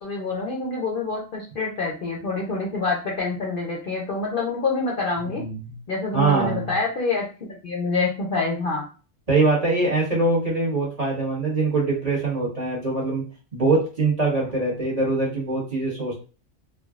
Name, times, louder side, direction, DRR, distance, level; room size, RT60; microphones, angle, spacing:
voice 1, 0.0-5.4 5.9-7.2 7.6-8.8, left 3 dB, 55° left, -2 dB, 0.7 m, -26 dB
voice 2, 5.3-5.7 6.1-6.7 9.3-13.2 13.5-16.2, right 3 dB, 30° right, -5 dB, 1.0 m, -23 dB
3.4 x 2.2 x 2.3 m, 0.36 s
omnidirectional pair, 1.4 m